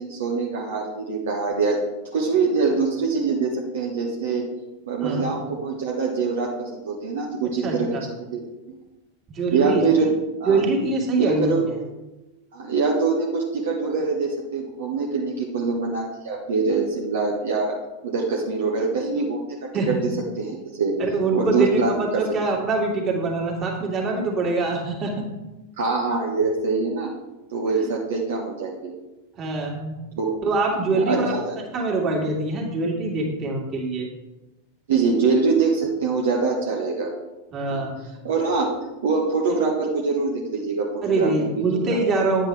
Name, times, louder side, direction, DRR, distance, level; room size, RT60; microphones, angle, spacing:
voice 1, 0.0-1.8 2.1-4.5 4.9-8.0 9.5-10.1 10.4-10.6 11.2-11.7 12.5-17.7 18.0-20.1 20.4-21.0 21.3-22.3 25.8-27.1 27.5-28.9 30.2-30.4 30.9-31.5 34.9-37.1 37.7-37.8 38.2-38.7 39.0-41.8, right 4 dB, 60° right, -2 dB, 1.3 m, -24 dB
voice 2, 7.6-8.0 9.3-9.8 10.4-11.5 19.7-20.0 21.0-25.3 27.8-27.9 29.4-29.9 30.4-31.3 31.7-34.1 37.5-37.9 41.0-42.5, right 3 dB, 30° right, -1 dB, 2.4 m, -24 dB
9.9 x 7.6 x 3.4 m, 1.0 s
figure-of-eight pair, 90°, 0 cm